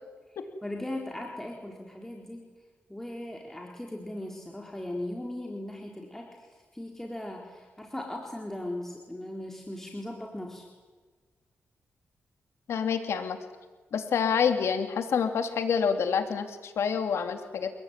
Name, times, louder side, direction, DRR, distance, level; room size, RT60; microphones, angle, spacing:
voice 1, 0.6-2.5 2.9-6.5 6.7-10.7, left 1 dB, 10° left, 0 dB, 4.1 m, -38 dB
voice 2, 12.7-13.4 13.9-17.7, left 6 dB, 85° left, 7 dB, 2.8 m, -27 dB
29.0 x 19.0 x 9.7 m, 1.4 s
cardioid pair, 105°, 4 cm